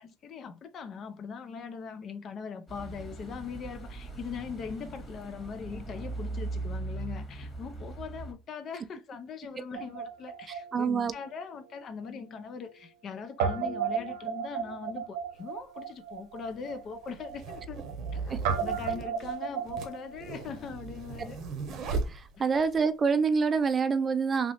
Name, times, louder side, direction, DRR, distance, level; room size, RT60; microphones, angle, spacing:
voice 1, 0.0-17.8 18.1-21.4 22.3-22.6, left 5 dB, 45° left, 0.4 m, -41 dB
sound 1, 2.7-8.3, right 2 dB, 20° left, 1.4 m, -39 dB
Guitar, 9.7-12.2 12.4-12.5 13.4-21.2, right 7 dB, 85° right, 0.7 m, -35 dB
voice 2, 10.7-11.1 18.3-18.4 22.1-24.5, right 5 dB, 30° right, 0.4 m, -26 dB
sound 2, 15.3-15.4 16.4-22.8, right 4 dB, 50° right, 0.8 m, -38 dB
3.0 x 2.8 x 2.8 m
cardioid pair, 115°, 0 cm